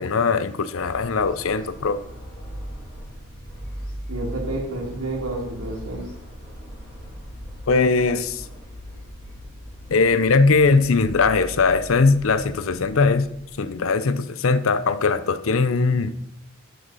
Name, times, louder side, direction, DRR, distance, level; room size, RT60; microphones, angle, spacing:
voice 1, 0.0-2.0 7.7-8.5 9.9-13.3 13.6-16.1, left 4 dB, 75° left, 14 dB, 0.6 m, -20 dB
sound 1, 0.7-13.9, equal, 40° left, 3.5 m, -38 dB
voice 2, 4.1-6.1, right 2 dB, 80° right, 1 dB, 2.4 m, -30 dB
12.0 x 6.5 x 4.1 m, 0.77 s
head